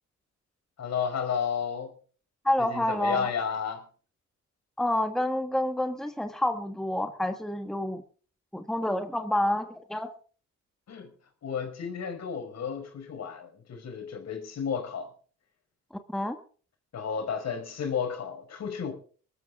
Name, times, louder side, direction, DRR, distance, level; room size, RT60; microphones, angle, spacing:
voice 1, 0.8-1.9 2.6-3.8 10.9-11.1 11.4-15.1 16.9-18.9, left 7 dB, 60° left, 5.2 m, -32 dB
voice 2, 2.4-3.3 4.8-8.0 8.5-10.1 16.1-16.4, left 1 dB, ahead, 1.4 m, -28 dB
21.5 x 13.5 x 3.7 m
cardioid pair, 90°, 30 cm